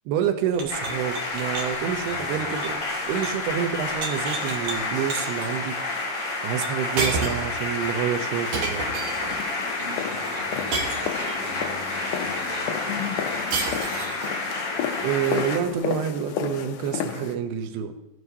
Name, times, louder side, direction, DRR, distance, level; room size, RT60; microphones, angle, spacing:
voice 1, 0.1-5.8 6.4-8.9 15.0-17.9, right 8 dB, 90° right, 6 dB, 2.8 m, -28 dB
sound 1, 0.5-3.4 3.7-4.8 5.1-5.5 6.6-6.7 7.0-7.5 8.5-9.4 10.7-11.5 13.5-14.3, right 3 dB, 60° right, 2.0 m, -31 dB
sound 2, 0.7-15.6, left 2 dB, 50° left, 4.1 m, -30 dB
voice 2, 2.0-2.6 9.8-14.4, right 2 dB, 25° right, -4 dB, 4.8 m, -43 dB
sound 3, 8.2-17.4, left 9 dB, 80° left, 1.8 m, -33 dB
15.5 x 9.4 x 2.7 m, 0.95 s
omnidirectional pair, 4.5 m